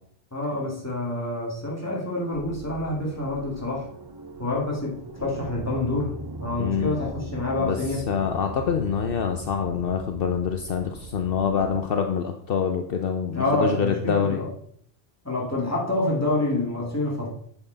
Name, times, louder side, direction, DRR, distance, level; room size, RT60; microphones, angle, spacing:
voice 1, 0.3-3.9 4.4-6.1 6.4-8.0 13.3-14.5 15.2-17.3, left 2 dB, 15° left, -4 dB, 2.5 m, -27 dB
sound 1, 2.3-11.8, right 1 dB, 30° right, 0.5 m, -39 dB
voice 2, 6.6-7.0 7.6-14.5, left 7 dB, 65° left, 5 dB, 0.9 m, -26 dB
9.1 x 7.3 x 4.0 m, 0.64 s
omnidirectional pair, 1.1 m